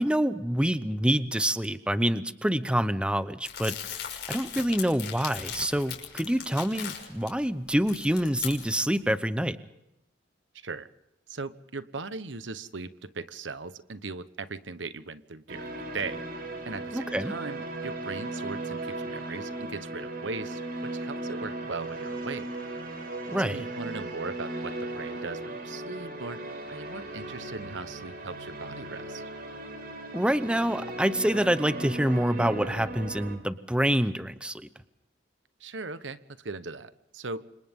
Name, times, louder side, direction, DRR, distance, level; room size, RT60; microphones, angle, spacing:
voice 1, 0.0-3.8 4.3-9.6 16.9-17.4 23.3-23.6 30.1-34.7, equal, 5° right, 12 dB, 0.8 m, -26 dB
Crumpling crinkling, 3.5-7.3 7.7-9.0, left 9 dB, 65° left, 5.9 m, -38 dB
voice 2, 10.5-10.9 11.3-16.2 16.6-22.5 23.4-29.3 35.6-37.5, right 3 dB, 85° right, 13 dB, 1.1 m, -39 dB
sound 1, 15.5-33.4, right 2 dB, 55° right, 4.7 m, -37 dB
29.5 x 26.0 x 3.7 m, 0.90 s
head